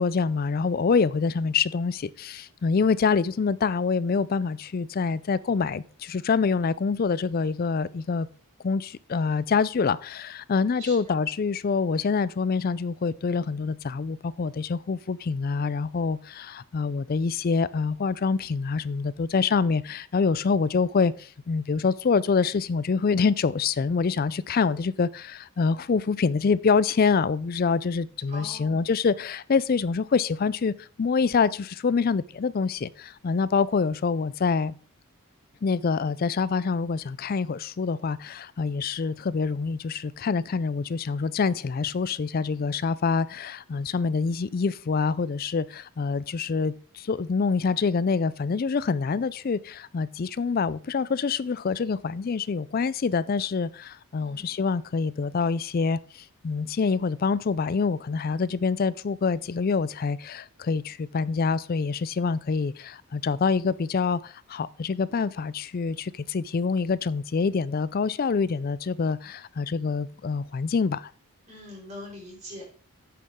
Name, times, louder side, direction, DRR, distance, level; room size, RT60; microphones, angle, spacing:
voice 1, 0.0-8.3 8.6-34.7 35.6-71.1, left 5 dB, 40° left, 0.4 m, -26 dB
voice 2, 10.8-11.2 28.3-28.8 54.2-54.4 71.5-72.6, left 1 dB, 30° right, 5.1 m, -42 dB
9.4 x 8.5 x 3.6 m
head